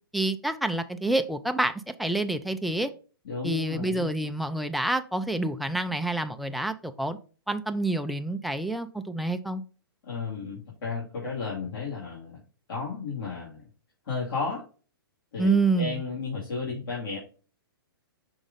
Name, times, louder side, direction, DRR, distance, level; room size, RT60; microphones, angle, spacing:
voice 1, 0.1-2.9 3.4-7.2 7.5-9.6 15.4-16.0, right 2 dB, ahead, 0.3 m, -27 dB
voice 2, 3.2-4.1 10.0-12.4 12.7-13.7 14.0-14.6 15.3-17.2, left 4 dB, 65° left, 2.7 m, -33 dB
6.1 x 3.9 x 3.9 m
hypercardioid pair, 135°, 13 cm